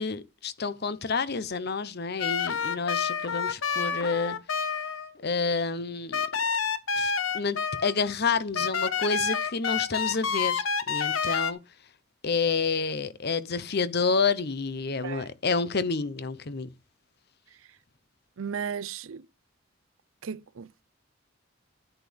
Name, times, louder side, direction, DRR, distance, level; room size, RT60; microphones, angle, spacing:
voice 1, 0.0-4.4 5.2-6.2 6.9-11.6 12.2-16.7, left 4 dB, 50° left, 0.9 m, -29 dB
sound 1, 2.2-5.1 6.1-8.1 8.5-11.5, left 6 dB, 80° left, 1.0 m, -28 dB
voice 2, 18.4-19.3 20.2-20.8, right 7 dB, 85° right, 0.6 m, -35 dB
10.5 x 10.0 x 3.5 m
head